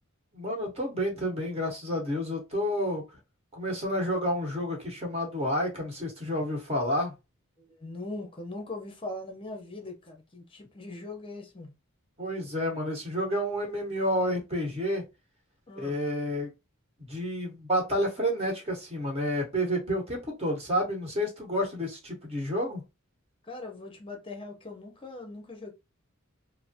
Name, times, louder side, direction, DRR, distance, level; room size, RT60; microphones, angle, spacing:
voice 1, 0.3-3.0 3.5-7.1 12.2-15.1 15.7-16.5 17.1-22.8, equal, 30° right, 1.3 m, -30 dB
voice 2, 7.6-11.7 15.7-16.0 23.4-25.7, left 2 dB, 25° left, 0.8 m, -40 dB
3.2 x 2.1 x 2.8 m
head